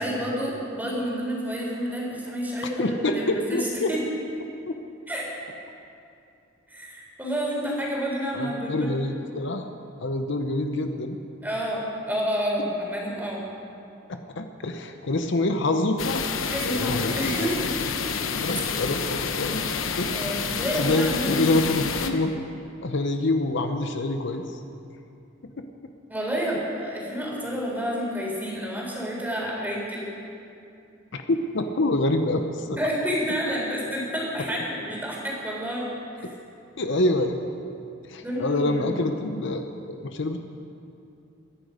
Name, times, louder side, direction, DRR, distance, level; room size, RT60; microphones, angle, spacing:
voice 1, 0.0-4.0 5.1-5.2 6.7-9.0 11.4-13.4 16.5-17.7 20.1-21.6 26.1-30.0 32.8-35.9 36.2-36.3 38.2-38.9, equal, 10° right, -4 dB, 3.7 m, -29 dB
voice 2, 2.8-3.9 4.7-4.8 8.3-9.7 10.0-11.2 14.1-16.3 16.6-17.5 18.4-19.6 20.0-20.5 20.7-22.3 22.8-24.4 25.6-25.7 31.1-32.8 36.8-37.4 38.1-40.4, left 2 dB, 65° left, 6 dB, 0.8 m, -26 dB
sound 1, 16.0-22.1, left 5 dB, 90° left, 1.0 m, -29 dB
22.5 x 10.5 x 5.1 m, 2.6 s
head